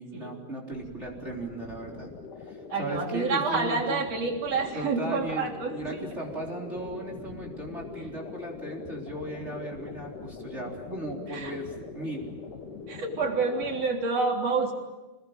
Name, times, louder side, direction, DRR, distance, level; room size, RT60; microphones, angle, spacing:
voice 1, 0.0-2.1 2.4-4.0 4.7-5.4 5.7-12.2, right 1 dB, 20° right, -2 dB, 4.0 m, -37 dB
sound 1, 0.7-13.8, left 4 dB, 75° left, 3.9 m, -43 dB
voice 2, 2.7-6.1 11.3-11.5 12.9-14.7, right 4 dB, 50° right, 2 dB, 4.5 m, -28 dB
28.0 x 20.5 x 8.9 m, 1.2 s
omnidirectional pair, 3.7 m